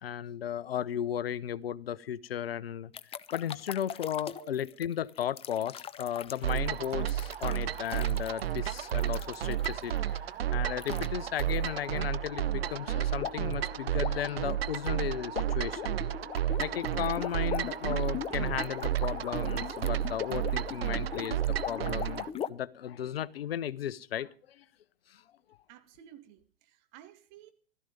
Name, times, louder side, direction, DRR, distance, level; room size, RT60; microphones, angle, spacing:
voice 1, 0.0-2.9 3.3-16.0 16.4-24.6 25.1-25.2, left 10 dB, 80° left, 0.8 m, -35 dB
sound 1, 2.9-10.0 10.8-11.1 11.4-11.6 13.2-13.5 13.9-22.5, left 9 dB, 20° left, 0.7 m, -40 dB
sound 2, 6.4-22.3, right 11 dB, 80° right, 0.7 m, -32 dB
sound 3, 11.6-18.7, left 11 dB, 60° left, 1.8 m, -51 dB
voice 2, 25.7-27.5, right 11 dB, 45° right, 2.1 m, -53 dB
16.0 x 13.5 x 5.2 m
hypercardioid pair, 105°, 30 cm